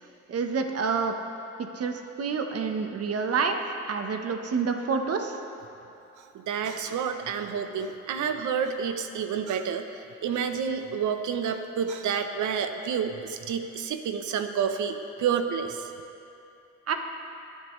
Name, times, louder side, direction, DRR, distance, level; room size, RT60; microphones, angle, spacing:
voice 1, 0.3-1.1 1.6-3.5 3.9-5.4 16.9-17.0, right 5 dB, 50° right, 5 dB, 1.2 m, -28 dB
voice 2, 6.5-9.8 10.2-15.9, right 7 dB, 75° right, 7 dB, 0.9 m, -29 dB
22.0 x 8.3 x 3.3 m, 2.9 s
cardioid pair, 90°, 30 cm